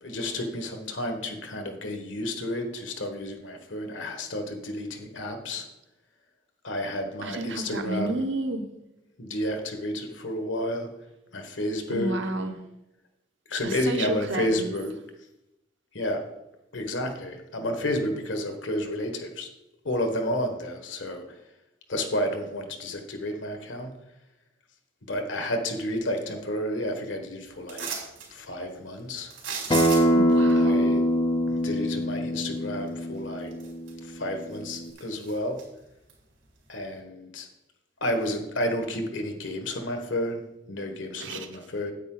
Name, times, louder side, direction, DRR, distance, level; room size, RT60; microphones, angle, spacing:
voice 1, 0.0-5.7 6.6-8.2 9.2-10.9 11.3-12.1 13.5-14.9 15.9-16.2 16.7-19.5 19.8-21.2 21.9-23.9 25.1-27.9 28.3-29.3 30.6-31.1 31.5-33.5 34.0-35.6 36.7-37.5 38.0-40.4 40.7-41.9, left 1 dB, 80° left, 1.4 m, -31 dB
voice 2, 7.2-8.8 11.9-12.5 13.6-14.7 30.1-30.9 41.2-41.5, right 2 dB, 75° right, 1.0 m, -31 dB
sound 1, 27.7-28.3 29.3-30.3 32.9-33.0 33.5-34.2 34.5-35.6 36.1-36.2, right 6 dB, 90° right, 3.5 m, -35 dB
Acoustic guitar, 29.7-34.9, equal, 25° left, 0.7 m, -24 dB
9.2 x 8.6 x 3.9 m
head